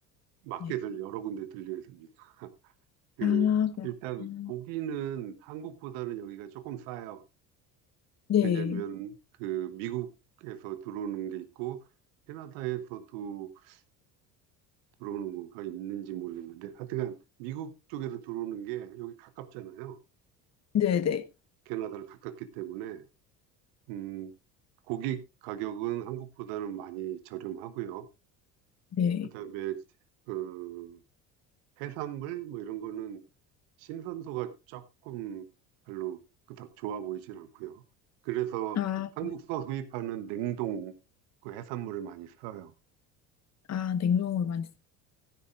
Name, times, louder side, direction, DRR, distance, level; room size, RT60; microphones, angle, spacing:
voice 1, 0.4-2.5 3.2-3.5 3.8-7.2 8.4-10.1 10.4-11.8 12.3-13.8 15.0-20.0 21.7-23.0 23.9-24.3 24.9-28.1 29.3-29.8 30.3-31.0 31.8-33.2 33.8-35.5 35.9-36.2 36.5-37.8 38.2-38.8 39.2-40.9 41.4-42.7, right 12 dB, 65° right, 1.1 m, -37 dB
voice 2, 3.2-3.9 4.2-4.5 8.3-8.8 20.7-21.2 28.9-29.3 38.8-39.1 43.7-44.8, left 9 dB, 35° left, 1.1 m, -27 dB
16.0 x 10.0 x 2.5 m
hypercardioid pair, 65°, 49 cm